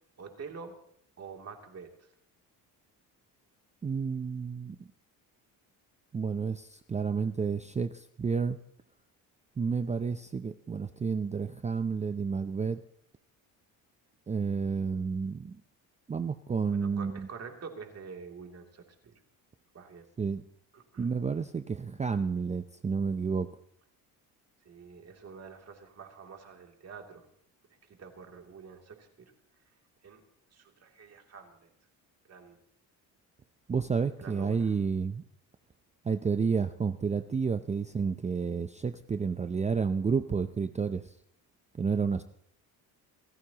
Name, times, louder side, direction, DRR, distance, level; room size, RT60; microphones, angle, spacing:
voice 1, 0.2-0.8 1.2-2.1 16.7-19.1 19.7-20.1 20.7-21.1 24.6-27.3 28.0-29.1 30.0-30.2 30.5-31.7 32.3-32.6 34.2-34.7, right 5 dB, 40° right, 3 dB, 2.8 m, -47 dB
voice 2, 3.8-4.8 6.1-8.6 9.6-12.8 14.3-15.6 16.1-17.3 20.2-20.4 21.0-23.5 33.7-35.2 36.0-41.1 41.8-42.2, right 5 dB, 20° right, 10 dB, 0.5 m, -30 dB
27.5 x 14.0 x 2.9 m, 0.68 s
cardioid pair, 105°, 38 cm